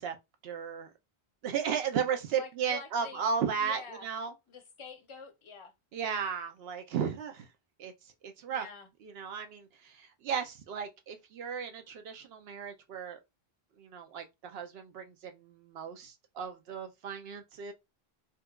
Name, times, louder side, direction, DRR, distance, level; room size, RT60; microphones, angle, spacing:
voice 1, 0.4-0.9 1.4-4.3 5.9-7.5 7.8-7.9 8.2-8.7 9.0-13.2 13.8-17.7, right 7 dB, 75° right, 0.8 m, -35 dB
voice 2, 2.3-3.2 3.6-4.1 4.5-5.7 8.5-8.9, left 5 dB, 35° left, 0.6 m, -47 dB
4.3 x 2.3 x 2.2 m
omnidirectional pair, 1.0 m